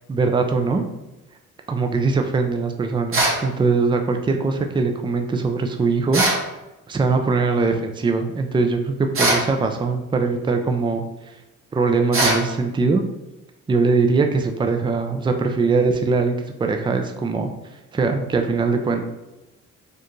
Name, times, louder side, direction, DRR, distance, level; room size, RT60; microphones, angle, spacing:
voice 1, 0.1-0.8 1.7-6.2 6.9-11.0 11.7-13.0 13.7-16.3 16.6-17.5 17.9-19.0, right 4 dB, 15° right, 5 dB, 0.4 m, -21 dB
sound 1, 3.1-3.4 6.1-6.4 9.1-9.5 12.1-12.4, right 2 dB, 45° right, 1.3 m, -20 dB
4.5 x 2.4 x 3.1 m, 1.0 s
cardioid pair, 90°, 30 cm